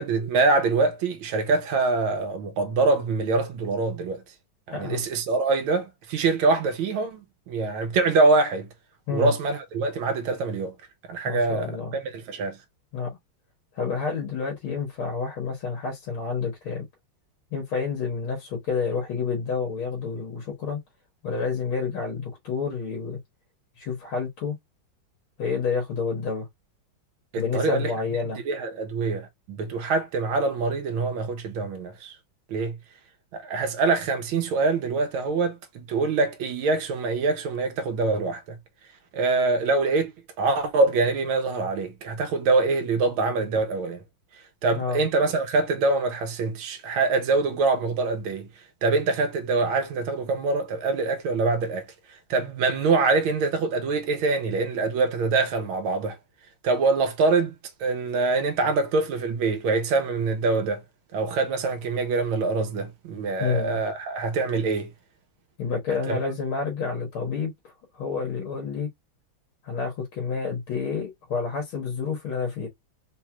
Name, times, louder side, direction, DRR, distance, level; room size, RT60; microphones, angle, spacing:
voice 1, 0.0-4.2 4.7-8.7 9.1-10.7 11.1-12.6 27.3-27.9 28.4-32.2 32.5-32.8 33.3-38.6 39.1-40.1 40.4-44.0 44.6-48.5 48.8-51.8 52.3-56.2 56.6-57.5 57.8-60.8 61.1-64.9 66.1-66.2, right 3 dB, 85° right, 1.6 m, -24 dB
voice 2, 4.7-5.0 9.1-9.3 11.2-11.9 12.9-13.2 13.8-16.8 17.5-20.8 21.2-23.2 23.8-24.6 25.4-26.5 27.4-28.4 44.8-45.0 63.4-63.8 65.6-67.5 67.9-68.9 69.6-72.7, left 5 dB, 85° left, 2.2 m, -29 dB
4.5 x 3.0 x 2.2 m
omnidirectional pair, 2.2 m